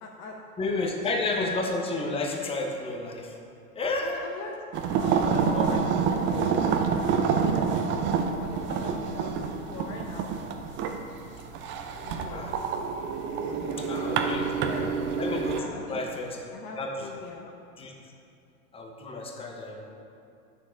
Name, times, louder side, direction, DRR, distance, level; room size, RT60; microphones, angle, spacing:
voice 1, 0.0-1.2 4.0-5.9 6.3-6.5 7.1-7.9 8.4-10.4 12.0-12.5 13.3-15.0 15.5-16.0 16.5-17.5, left 4 dB, 35° left, 1 dB, 0.8 m, -42 dB
voice 2, 0.6-3.3 3.8-4.1 5.2-5.7 12.3-12.5 13.8-14.5 15.2-15.6 15.9-16.4 16.8-16.9 17.8-17.9 18.7-19.9, left 2 dB, 15° left, 1 dB, 1.0 m, -31 dB
sound 1, 4.7-15.6, right 6 dB, 25° right, 0.6 m, -27 dB
9.2 x 6.5 x 4.5 m, 2.5 s
hypercardioid pair, 115°, 43 cm